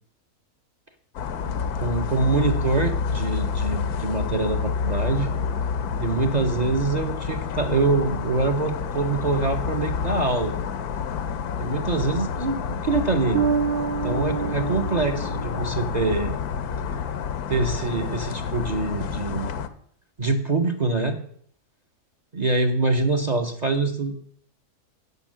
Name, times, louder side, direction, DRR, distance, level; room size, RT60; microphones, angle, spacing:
sound 1, 1.2-19.7, left 6 dB, 90° left, 1.3 m, -28 dB
voice 1, 1.5-5.3 6.0-10.5 11.6-13.4 13.9-16.3 16.9-17.0 17.5-19.5 20.2-21.2 22.3-24.1, right 3 dB, 40° right, 8 dB, 0.7 m, -25 dB
Bass guitar, 13.3-16.0, right 7 dB, 80° right, 0.5 m, -27 dB
11.0 x 5.8 x 7.5 m, 0.63 s
omnidirectional pair, 1.6 m